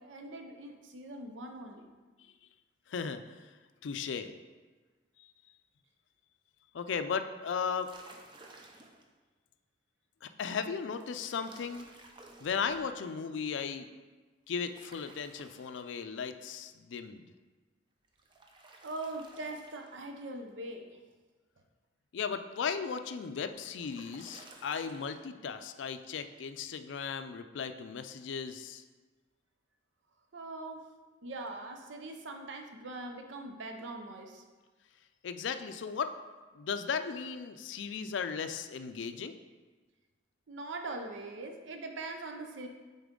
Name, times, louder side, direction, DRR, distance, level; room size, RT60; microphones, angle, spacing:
voice 1, 0.0-1.9 18.8-21.0 30.3-30.9 31.2-34.4 40.5-42.7, right 2 dB, 80° right, 4 dB, 0.6 m, -42 dB
voice 2, 2.9-3.5 3.8-4.3 5.2-5.3 6.7-7.9 10.2-11.9 12.4-13.9 14.5-17.3 22.1-28.8 35.2-36.1 36.5-39.4, left 6 dB, 75° left, 10 dB, 0.4 m, -36 dB
sound 1, 7.6-9.1 10.9-12.9 14.5-16.2 18.0-20.2 23.2-25.2, right 2 dB, 25° right, 0.6 m, -56 dB
6.9 x 4.1 x 3.7 m, 1.3 s
head